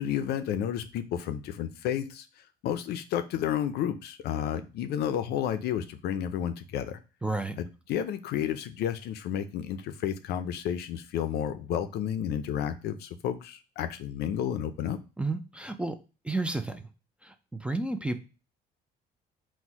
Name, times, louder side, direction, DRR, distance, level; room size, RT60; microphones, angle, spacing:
voice 1, 0.0-2.2 2.6-7.0 7.6-15.0, left 9 dB, 75° left, 9 dB, 0.5 m, -31 dB
voice 2, 7.2-7.6 15.2-16.0 16.2-16.9 17.2-18.2, right 2 dB, 5° right, 8 dB, 0.4 m, -31 dB
4.1 x 2.2 x 4.5 m, 0.32 s
cardioid pair, 110°, 17 cm